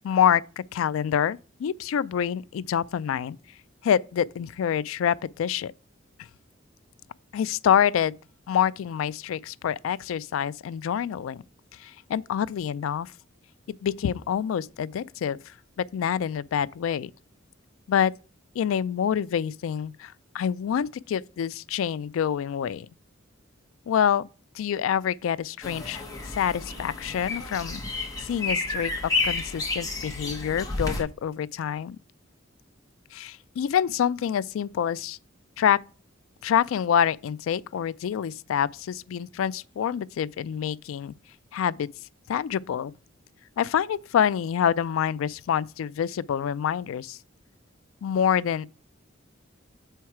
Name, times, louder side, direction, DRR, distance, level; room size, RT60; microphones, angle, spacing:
voice 1, 0.0-3.4 3.8-5.7 7.3-8.1 8.5-11.4 11.8-13.1 13.8-17.1 17.9-18.1 18.6-22.9 23.9-24.3 24.5-27.8 28.2-32.0 33.1-35.2 35.6-35.8 36.4-41.1 41.5-41.9 42.3-42.9 43.6-47.2 48.0-48.7, left 8 dB, 90° left, 0.3 m, -26 dB
sound 1, 25.6-31.0, left 3 dB, 20° left, 1.3 m, -31 dB
7.2 x 4.5 x 4.7 m
head